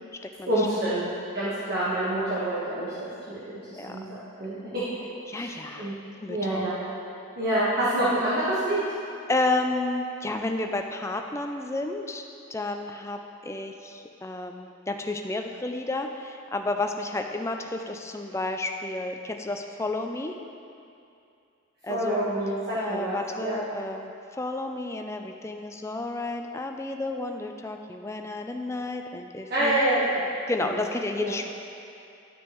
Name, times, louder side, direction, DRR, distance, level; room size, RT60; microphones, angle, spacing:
voice 1, 0.5-4.8 5.3-5.9 6.3-6.8 7.4-8.8 21.9-23.6 29.5-30.2 30.7-30.8 31.2-31.3, right 1 dB, 50° right, -11 dB, 1.3 m, -27 dB
voice 2, 5.3-6.7 9.3-12.2 12.5-20.3 21.8-22.3 22.7-29.8 30.5-31.5, left 2 dB, 15° left, 4 dB, 0.3 m, -31 dB
11.5 x 6.1 x 3.1 m, 2.5 s
head